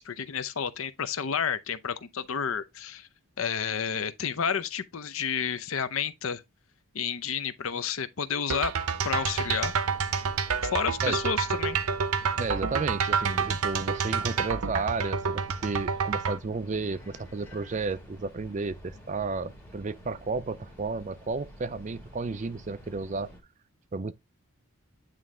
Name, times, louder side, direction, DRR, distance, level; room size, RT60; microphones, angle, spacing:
voice 1, 0.0-3.1 3.4-6.4 6.9-8.7 9.0-9.7 10.7-11.8, left 7 dB, 70° left, 0.6 m, -30 dB
sound 1, 8.5-16.4, right 5 dB, 85° right, 0.7 m, -28 dB
sound 2, 8.8-23.4, equal, 5° left, 2.3 m, -49 dB
voice 2, 12.4-23.3 23.9-24.1, right 4 dB, 35° right, 0.4 m, -32 dB
9.0 x 3.3 x 3.7 m
head